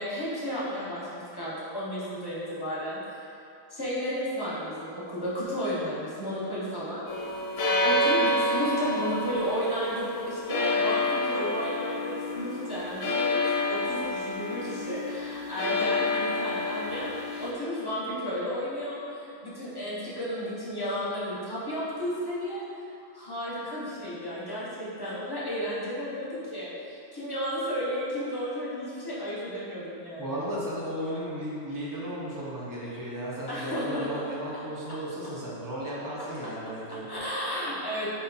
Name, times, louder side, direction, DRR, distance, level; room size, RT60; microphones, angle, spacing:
voice 1, 0.0-3.0 3.7-7.1 7.8-22.6 23.1-30.5 33.5-34.1 37.1-38.1, equal, 20° left, -9 dB, 0.8 m, -33 dB
sound 1, 7.1-17.5, left 2 dB, 90° left, 1.0 m, -29 dB
voice 2, 30.2-37.1, equal, 20° right, -7 dB, 0.6 m, -35 dB
4.2 x 2.7 x 4.0 m, 2.7 s
omnidirectional pair, 1.3 m